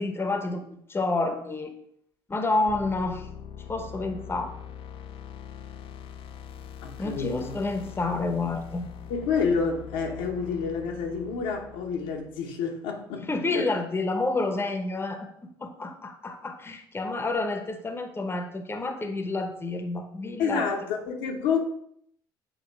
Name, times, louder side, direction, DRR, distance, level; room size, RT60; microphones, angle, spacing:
voice 1, 0.0-1.7 2.3-3.3 3.7-4.6 7.0-8.9 13.2-15.3 15.6-20.7, left 3 dB, 20° left, 0.9 m, -29 dB
sound 1, 2.7-12.5, left 8 dB, 50° left, 0.5 m, -43 dB
voice 2, 6.8-7.5 9.1-13.6 20.4-21.6, left 5 dB, 70° left, 1.1 m, -29 dB
7.8 x 2.8 x 4.6 m
hypercardioid pair, 55°, 12 cm